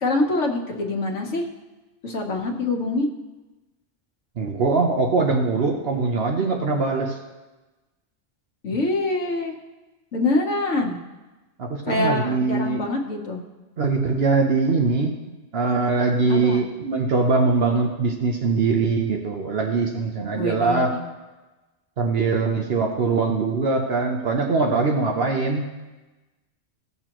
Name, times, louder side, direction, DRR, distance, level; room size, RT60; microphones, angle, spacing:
voice 1, 0.0-1.5 2.0-3.1 8.6-9.6 10.1-11.0 11.9-13.4 16.3-16.6 20.3-21.0, left 2 dB, 85° left, 1 dB, 1.5 m, -25 dB
voice 2, 4.4-7.2 11.6-12.8 13.8-15.2 15.5-20.9 22.0-25.7, right 4 dB, 60° right, 2 dB, 1.0 m, -22 dB
16.0 x 6.9 x 3.0 m, 1.1 s
omnidirectional pair, 1.2 m